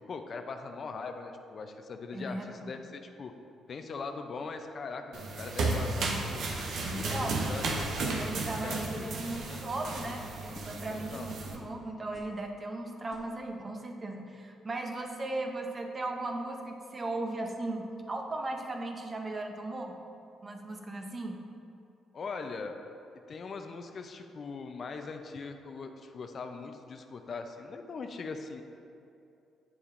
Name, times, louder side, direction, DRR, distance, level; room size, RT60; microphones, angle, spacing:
voice 1, 0.1-3.3 3.7-6.5 6.8-7.6 8.6-9.2 9.5-9.7 10.8-11.3 22.1-22.8 23.3-28.6, left 4 dB, 50° left, 6 dB, 0.5 m, -41 dB
voice 2, 2.1-2.8 6.8-7.5 8.1-19.9 20.4-21.4, right 2 dB, 35° right, 3 dB, 0.8 m, -37 dB
sound 1, 5.1-11.6, right 3 dB, 70° right, 0.8 m, -33 dB
sound 2, 9.3-9.6 9.9-10.2 10.5-11.0 11.4-11.7 12.1-12.4 13.1-13.3, left 1 dB, 25° left, 1.3 m, -52 dB
8.5 x 7.0 x 2.5 m, 2.6 s
cardioid pair, 90°, 0 cm